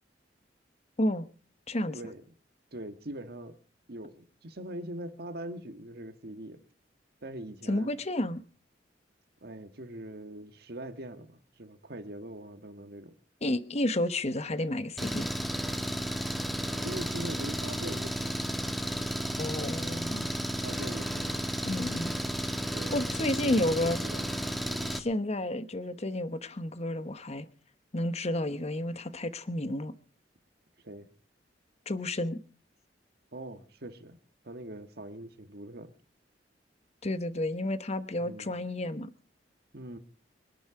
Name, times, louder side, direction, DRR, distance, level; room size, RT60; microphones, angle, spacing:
voice 1, 1.7-2.0 7.7-8.4 13.4-15.3 19.4-20.3 21.6-22.1 22.9-24.0 24.9-27.5 27.9-29.9 31.9-32.4 37.0-39.1, left 1 dB, 40° left, 1.1 m, -31 dB
voice 2, 2.7-3.6 3.9-6.6 7.2-7.9 9.4-13.2 16.8-18.6 20.6-21.4 22.7-24.4 24.6-25.0 30.8-31.1 33.3-34.2 34.4-35.9 38.2-38.5 39.7-40.0, right 1 dB, 60° right, 1.6 m, -42 dB
Engine, 15.0-25.0, equal, ahead, 1.5 m, -33 dB
24.0 x 11.5 x 4.9 m
head